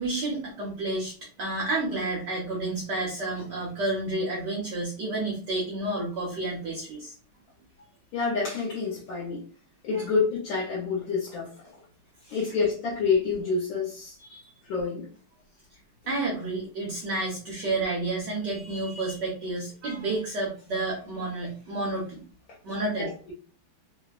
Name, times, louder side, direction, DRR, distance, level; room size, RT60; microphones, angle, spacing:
voice 1, 0.0-7.1 9.9-10.0 12.2-12.4 14.2-14.4 16.1-22.2 22.6-23.1, right 2 dB, 65° right, -3 dB, 1.2 m, -30 dB
voice 2, 8.1-9.4 9.8-11.5 12.3-14.2 14.6-15.1 23.0-23.1, left 4 dB, 70° left, -4 dB, 1.4 m, -27 dB
3.4 x 2.1 x 2.3 m, 0.40 s
omnidirectional pair, 2.4 m